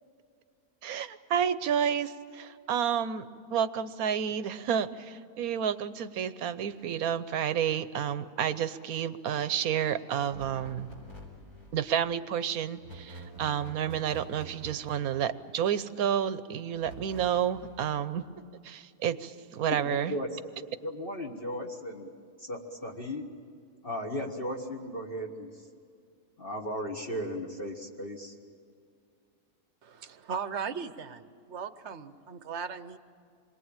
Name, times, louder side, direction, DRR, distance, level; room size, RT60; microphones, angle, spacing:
voice 1, 0.8-10.9 11.7-18.3 18.6-20.2, right 9 dB, 75° right, 13 dB, 1.3 m, -30 dB
sound 1, 10.3-11.9 12.7-15.4 16.7-17.9, right 2 dB, 75° left, 4.9 m, -47 dB
voice 2, 19.7-20.3 20.5-22.1 22.4-23.2 23.8-25.5 26.4-28.3, equal, 35° left, 0 dB, 1.8 m, -36 dB
voice 3, 29.8-33.0, right 6 dB, 55° right, 12 dB, 1.1 m, -38 dB
27.5 x 22.0 x 8.9 m, 2.2 s
omnidirectional pair, 1.6 m